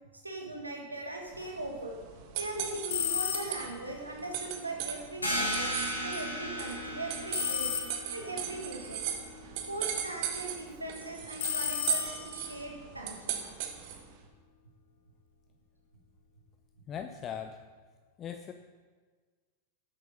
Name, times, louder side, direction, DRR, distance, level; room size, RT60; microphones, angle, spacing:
voice 1, 0.2-2.0 2.4-5.7 6.0-7.7 8.1-9.0 9.7-13.4, right 2 dB, 85° right, 1 dB, 1.8 m, -40 dB
sound 1, 1.3-14.1, right 9 dB, 45° right, 1.3 m, -38 dB
sound 2, 2.9-3.8 7.3-8.3 11.4-12.5, left 8 dB, 55° left, 1.1 m, -33 dB
sound 3, 5.2-10.6, equal, 80° left, 2.5 m, -37 dB
voice 2, 16.9-17.6 18.2-18.5, left 8 dB, 30° left, 8 dB, 0.5 m, -39 dB
9.1 x 8.2 x 5.3 m, 1.5 s
figure-of-eight pair, 90°, 0 cm